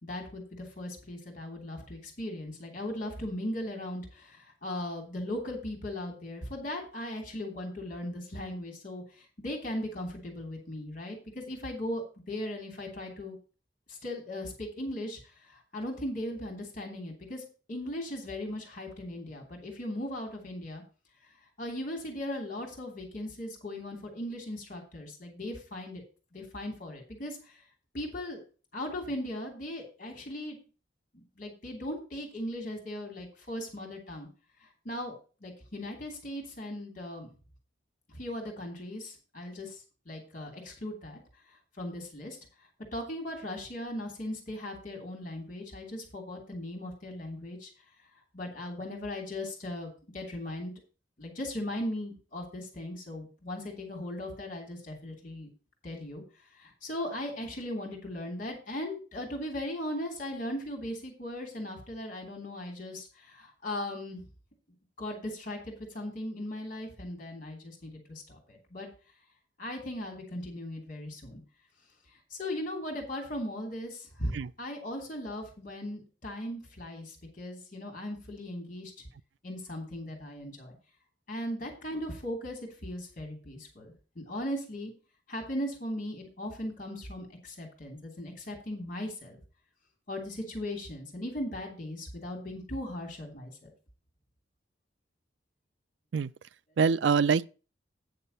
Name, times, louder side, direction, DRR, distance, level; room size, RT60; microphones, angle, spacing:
voice 1, 0.0-13.4 13.9-20.8 21.6-26.0 26.3-27.6 27.9-28.4 28.7-30.6 31.1-34.3 34.6-35.1 35.4-37.3 38.1-41.2 41.8-42.4 42.9-47.7 48.3-50.7 51.2-55.5 55.8-56.2 56.5-64.3 65.0-68.9 69.6-71.4 72.3-74.3 74.6-78.9 79.4-80.7 81.3-84.9 85.3-89.4 90.1-93.7, left 1 dB, 45° left, 3.1 m, -38 dB
voice 2, 96.8-97.5, right 5 dB, 80° right, 0.4 m, -24 dB
9.3 x 6.8 x 5.5 m
head